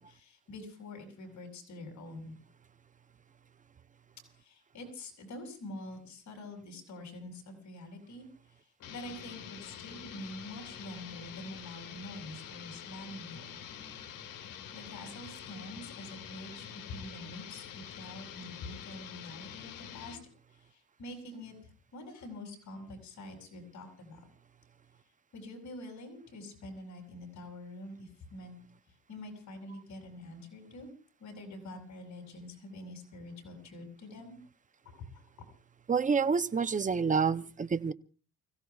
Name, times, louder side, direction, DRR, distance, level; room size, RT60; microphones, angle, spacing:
voice 1, 0.0-2.3 4.4-8.3 8.9-13.6 14.7-20.2 20.7-24.2 25.3-28.6 29.1-30.9 31.2-34.4 34.9-35.5, left 1 dB, 60° left, 6.9 m, -46 dB
sound 1, 8.8-20.3, left 9 dB, 80° left, 1.9 m, -46 dB
voice 2, 35.9-37.9, right 5 dB, 25° right, 0.7 m, -28 dB
29.5 x 16.5 x 2.4 m
cardioid pair, 105°, 32 cm